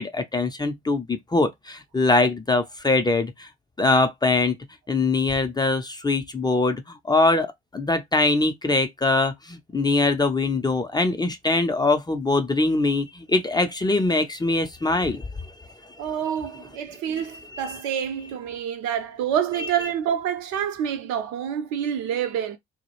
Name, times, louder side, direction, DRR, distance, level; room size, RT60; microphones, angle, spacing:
voice 1, 0.0-3.5 3.8-4.6 4.9-16.0 17.2-17.3 17.5-17.7 19.6-19.7, left 2 dB, 15° left, 0.4 m, -23 dB
voice 2, 16.0-22.6, right 9 dB, 65° right, 0.6 m, -27 dB
2.2 x 2.0 x 2.9 m
figure-of-eight pair, 45°, 31 cm